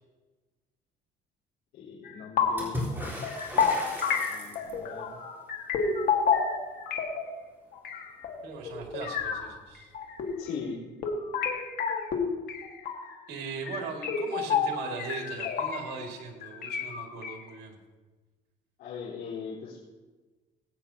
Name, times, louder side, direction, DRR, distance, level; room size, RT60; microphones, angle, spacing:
voice 1, 1.7-2.9 4.3-5.2 10.4-10.8 18.8-19.9, left 6 dB, 85° left, -10 dB, 3.9 m, -39 dB
sound 1, 2.0-2.7 3.0-7.4 7.7-9.5 9.8-10.5 11.0-13.1 13.7-16.1 16.4-17.4, left 6 dB, 65° left, 1.8 m, -30 dB
Water / Splash splatter, 2.6-5.0 8.2-8.3 8.6-9.4 10.5-10.6, left 1 dB, 10° right, 3.8 m, -36 dB
voice 2, 8.4-9.9 13.3-17.8, right 4 dB, 75° right, 1 dB, 2.4 m, -39 dB
21.0 x 8.8 x 2.9 m, 1.3 s
cardioid pair, 110°, 17 cm